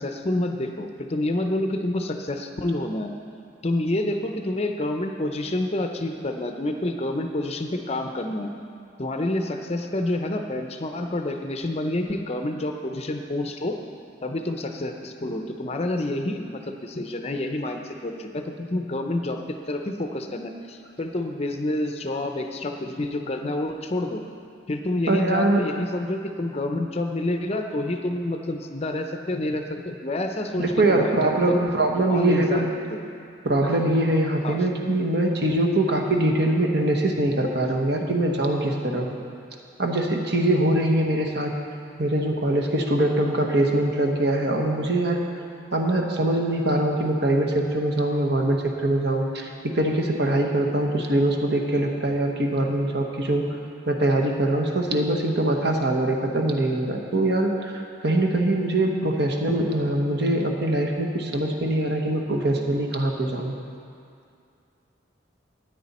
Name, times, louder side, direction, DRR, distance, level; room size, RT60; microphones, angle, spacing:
voice 1, 0.0-3.1 3.6-8.5 9.0-13.8 14.2-24.2 24.7-31.6 32.1-33.0 34.4-34.7, left 1 dB, 30° left, 5 dB, 0.6 m, -28 dB
voice 2, 25.1-25.7 30.6-32.7 33.4-39.1 39.8-41.5 42.0-45.2 45.7-53.5 53.9-57.7 58.0-63.5, right 1 dB, 60° right, 1 dB, 1.1 m, -23 dB
13.0 x 9.4 x 4.2 m, 2.5 s
head